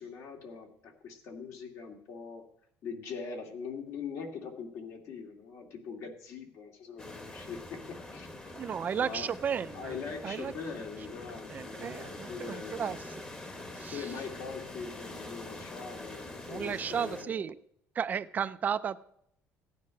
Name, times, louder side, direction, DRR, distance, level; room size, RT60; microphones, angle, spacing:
voice 1, 0.0-2.4 2.8-8.3 9.0-9.3 9.7-13.0 13.9-17.4, left 5 dB, 60° left, 3 dB, 2.2 m, -42 dB
sound 1, 7.0-17.2, left 2 dB, 20° left, 1.2 m, -45 dB
voice 2, 8.5-10.0 10.2-10.5 11.5-13.2 13.7-14.1 16.5-17.6 17.9-19.0, right 7 dB, 30° right, 13 dB, 0.4 m, -34 dB
16.0 x 9.6 x 5.3 m, 0.72 s
cardioid pair, 160°, 5 cm